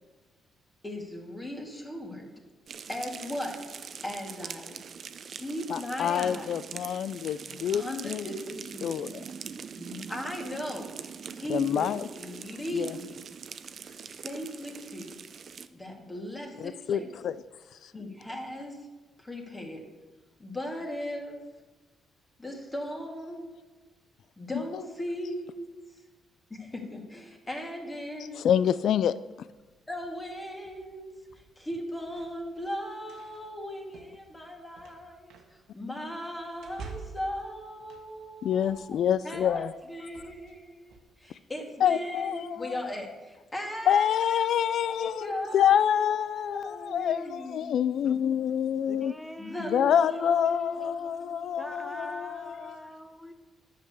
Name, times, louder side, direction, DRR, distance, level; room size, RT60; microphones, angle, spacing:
voice 1, 0.8-2.3 2.9-3.6 4.0-4.8 5.2-6.8 7.5-8.9 9.8-11.0 11.3-13.3 14.0-15.2 15.7-17.1 17.9-18.8 19.2-19.8 20.4-21.4 22.4-23.5 24.4-25.7 26.5-28.5 29.9-35.4 35.7-39.0 39.2-48.2 49.4-51.6, equal, 20° left, 2.2 m, -38 dB
sound 1, 2.7-15.7, right 6 dB, 50° right, 0.6 m, -43 dB
voice 2, 5.7-8.2 8.8-9.2 11.5-12.0 12.7-12.9 16.6-17.3 17.8-17.9 28.4-29.1 38.4-39.7 41.8-42.7 43.9-49.1 49.7-52.8, left 9 dB, 70° left, 0.3 m, -27 dB
sound 2, 29.5-41.0, right 5 dB, 85° right, 1.4 m, -51 dB
voice 3, 48.9-50.2 51.6-53.3, equal, ahead, 1.1 m, -43 dB
10.5 x 6.8 x 6.8 m
cardioid pair, 90°, 0 cm